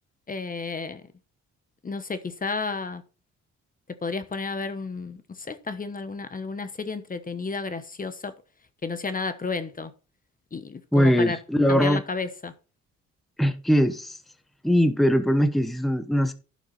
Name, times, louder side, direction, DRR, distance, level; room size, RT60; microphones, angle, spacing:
voice 1, 0.3-1.0 1.8-3.0 4.0-8.3 8.8-9.9 10.5-11.4 11.7-12.5, left 4 dB, 30° left, 1.1 m, -32 dB
voice 2, 10.9-12.0 13.4-14.2 14.6-16.3, equal, ahead, 0.9 m, -21 dB
11.5 x 6.2 x 4.1 m
cardioid pair, 90°, 30 cm